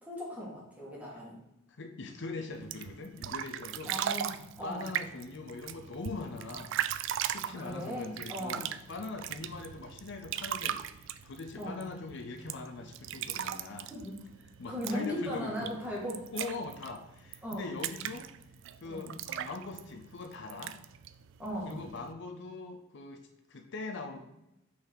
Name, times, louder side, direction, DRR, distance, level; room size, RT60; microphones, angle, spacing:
voice 1, 0.0-1.4 3.9-4.8 7.4-8.6 11.6-11.8 13.9-14.2 14.7-16.2 17.4-17.7 18.8-19.2 21.4-21.8, equal, 10° right, -5 dB, 2.0 m, -38 dB
voice 2, 1.8-3.9 4.6-6.8 7.2-13.9 14.6-15.8 16.3-18.3 18.8-20.8 21.7-24.2, left 3 dB, 65° left, 5 dB, 0.6 m, -42 dB
sound 1, 2.5-22.1, right 10 dB, 65° right, 0.3 m, -39 dB
5.7 x 4.1 x 4.5 m, 0.90 s
head